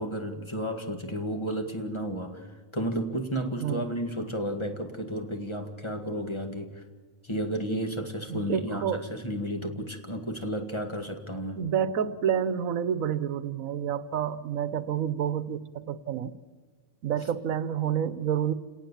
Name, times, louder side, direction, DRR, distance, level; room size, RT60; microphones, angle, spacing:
voice 1, 0.0-6.8 7.2-11.6, equal, 20° left, 4 dB, 2.0 m, -32 dB
voice 2, 8.3-9.0 11.6-16.3 17.0-18.5, right 9 dB, 85° right, 14 dB, 1.3 m, -29 dB
29.0 x 18.0 x 7.4 m, 1.5 s
omnidirectional pair, 1.4 m